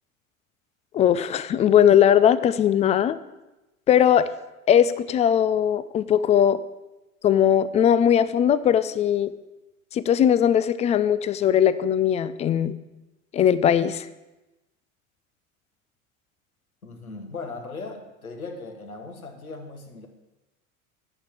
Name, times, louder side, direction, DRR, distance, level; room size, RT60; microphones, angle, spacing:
voice 1, 0.9-3.2 3.9-4.3 4.7-6.6 7.2-9.3 9.9-12.8 13.3-14.1, left 9 dB, 15° left, 15 dB, 0.3 m, -19 dB
voice 2, 16.8-20.1, left 3 dB, 85° left, 4 dB, 1.6 m, -38 dB
9.7 x 6.5 x 8.4 m, 1.0 s
figure-of-eight pair, 80°, 42 cm